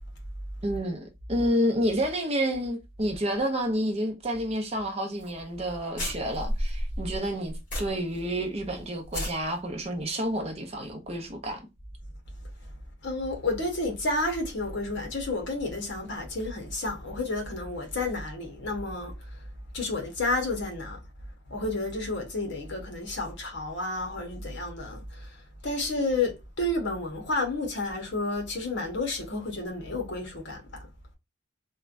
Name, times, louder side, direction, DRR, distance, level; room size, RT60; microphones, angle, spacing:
voice 1, 0.6-11.7, equal, 30° right, 0.6 m, -29 dB
sound 1, 5.2-5.3 5.6-5.7 6.0-8.2 8.5-8.6 9.0-9.3, equal, 40° left, 1.5 m, -31 dB
voice 2, 13.0-19.4 19.7-21.0 21.5-30.6, left 2 dB, 55° left, 0.9 m, -31 dB
3.2 x 2.2 x 2.4 m
head